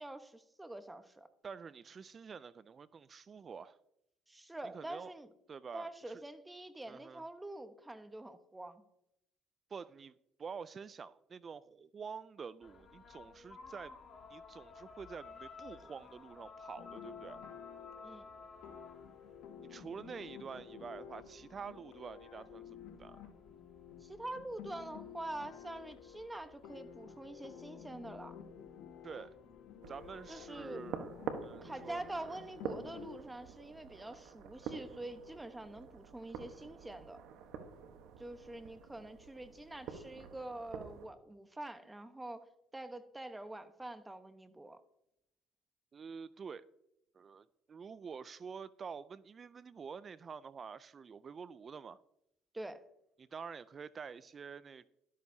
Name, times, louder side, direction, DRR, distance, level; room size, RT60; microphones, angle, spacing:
voice 1, 0.0-1.3 4.3-5.3 5.7-8.8 18.0-18.3 24.0-28.3 30.3-30.8 31.6-37.2 38.2-42.5 42.7-44.8 52.5-52.8, right 1 dB, 10° right, 1.0 m, -46 dB
voice 2, 1.4-3.8 4.6-5.1 5.5-6.2 6.9-7.2 9.7-10.1 10.4-14.0 14.3-17.4 19.6-23.3 29.0-29.4 29.9-31.1 31.4-32.0 45.9-46.7 47.1-52.0 53.2-54.9, right 6 dB, 40° right, 0.4 m, -48 dB
sound 1, 12.6-30.2, left 4 dB, 40° left, 2.2 m, -56 dB
sound 2, 16.8-33.2, left 8 dB, 70° left, 1.4 m, -52 dB
sound 3, 29.8-41.1, right 7 dB, 70° right, 1.1 m, -47 dB
12.5 x 12.0 x 2.8 m
supercardioid pair, 75°, 0 cm